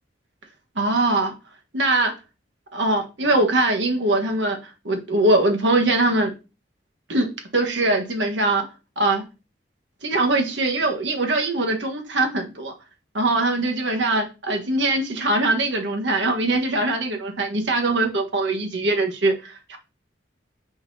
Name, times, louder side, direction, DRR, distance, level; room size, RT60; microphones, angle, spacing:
voice 1, 0.7-1.3 1.7-2.1 2.7-4.6 4.8-6.3 7.1-8.6 9.0-9.2 10.0-12.7 13.1-19.8, right 2 dB, 70° right, 1.4 m, -22 dB
9.4 x 4.0 x 2.8 m
head